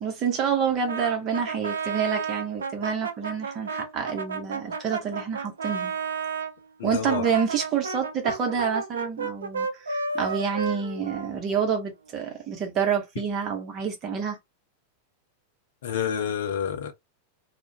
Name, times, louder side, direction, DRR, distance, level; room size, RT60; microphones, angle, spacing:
voice 1, 0.0-5.9 6.8-14.4, right 7 dB, 35° right, 0.9 m, -28 dB
Brass instrument, 0.9-6.5 7.0-11.8, right 5 dB, 70° right, 0.4 m, -32 dB
voice 2, 6.8-7.2 15.8-16.9, left 8 dB, 60° left, 0.6 m, -28 dB
2.3 x 2.1 x 2.8 m
figure-of-eight pair, 90°, 0 cm